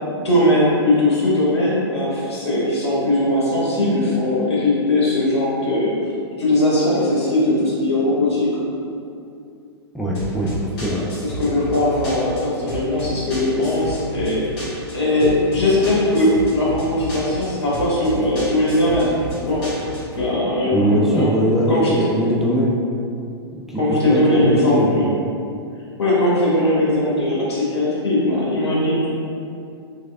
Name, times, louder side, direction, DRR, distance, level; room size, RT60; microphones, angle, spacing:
voice 1, 0.2-5.9 6.4-8.5 10.9-14.4 14.9-19.1 19.4-19.6 20.1-21.3 21.7-22.1 23.7-25.1 26.0-29.1, left 1 dB, 80° left, -7 dB, 1.2 m, -19 dB
voice 2, 9.9-11.0 20.7-22.9 23.7-25.0, right 1 dB, 5° right, -6 dB, 0.3 m, -21 dB
sound 1, 10.1-20.2, right 1 dB, 50° left, 1.4 m, -32 dB
3.4 x 3.2 x 2.3 m, 2.5 s
hypercardioid pair, 115°, 14 cm